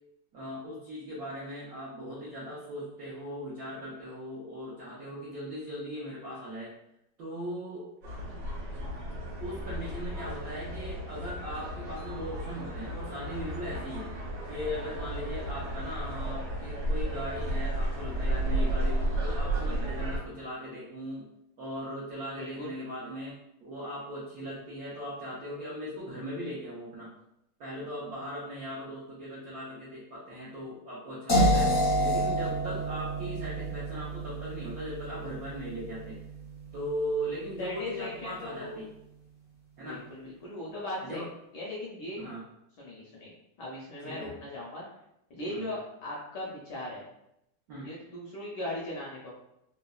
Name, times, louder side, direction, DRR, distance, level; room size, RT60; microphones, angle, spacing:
voice 1, 0.3-6.7 7.2-7.9 9.4-14.1 14.5-21.3 21.6-27.1 27.6-31.7 32.0-36.2 36.7-38.9 39.8-40.0 41.0-41.3 42.2-42.4 44.0-44.3 45.5-45.7 47.7-48.0, equal, 80° right, -7 dB, 0.8 m, -38 dB
sound 1, 8.0-20.2, right 1 dB, 60° right, 1.4 m, -33 dB
voice 2, 22.3-22.7 37.6-38.8 39.8-41.2 41.5-42.2 42.8-43.3 43.6-44.8 45.3-47.1 47.8-49.3, left 1 dB, 75° left, -4 dB, 1.0 m, -38 dB
sound 2, 31.3-37.2, equal, 55° left, 0.6 m, -29 dB
3.7 x 2.0 x 2.3 m, 0.81 s
omnidirectional pair, 2.4 m